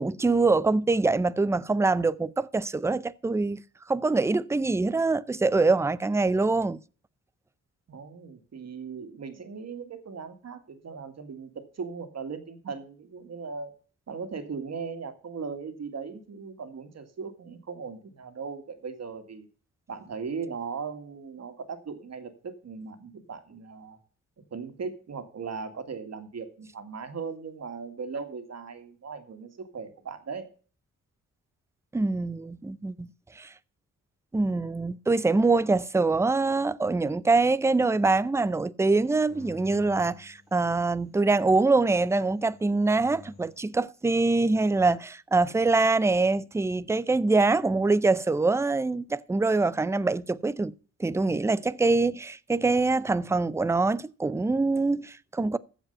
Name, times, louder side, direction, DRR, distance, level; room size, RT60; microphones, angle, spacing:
voice 1, 0.0-3.6 3.9-6.8 31.9-33.1 33.4-33.5 34.3-50.7 51.0-55.6, right 3 dB, 10° right, 0.4 m, -24 dB
voice 2, 7.9-13.7 14.1-19.5 19.9-24.0 24.5-30.5, right 5 dB, 60° right, 2.1 m, -38 dB
sound 1, 39.2-41.2 42.2-43.7, left 3 dB, 35° left, 6.7 m, -50 dB
15.0 x 5.1 x 5.5 m
cardioid pair, 95°, 30 cm